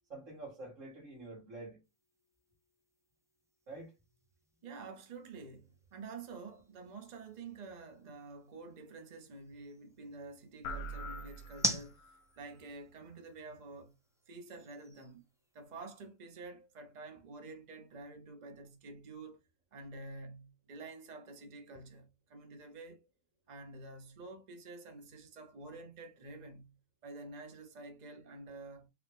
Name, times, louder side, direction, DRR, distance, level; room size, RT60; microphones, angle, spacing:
voice 1, 0.1-1.8 3.7-3.9 10.9-11.0, right 2 dB, 70° right, 1.9 m, -47 dB
sound 1, 1.8-16.1, equal, 5° right, 0.4 m, -46 dB
voice 2, 4.6-12.0 12.3-13.9 14.3-15.2 15.5-19.4 19.7-23.1 23.5-26.7 27.0-28.9, right 3 dB, 40° right, 0.8 m, -49 dB
sound 2, 10.6-12.2, equal, 85° left, 1.0 m, -43 dB
4.9 x 2.3 x 3.3 m
omnidirectional pair, 1.4 m